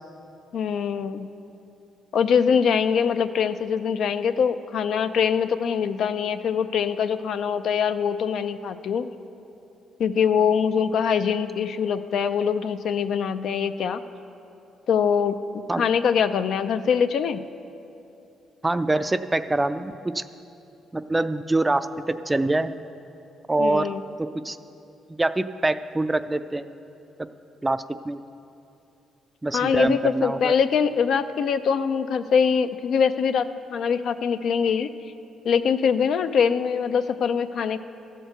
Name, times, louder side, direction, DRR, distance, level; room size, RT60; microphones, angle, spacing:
voice 1, 0.5-1.3 2.1-9.1 10.0-14.0 14.9-17.4 23.6-24.0 29.5-34.9 35.4-37.8, left 7 dB, 70° left, 10 dB, 0.4 m, -23 dB
voice 2, 18.6-20.2 20.9-22.7 23.5-23.9 24.2-24.6 25.2-26.7 27.6-28.2 29.4-30.5, right 2 dB, 15° right, 12 dB, 0.3 m, -24 dB
13.5 x 4.5 x 7.9 m, 2.7 s
cardioid pair, 90°, 0 cm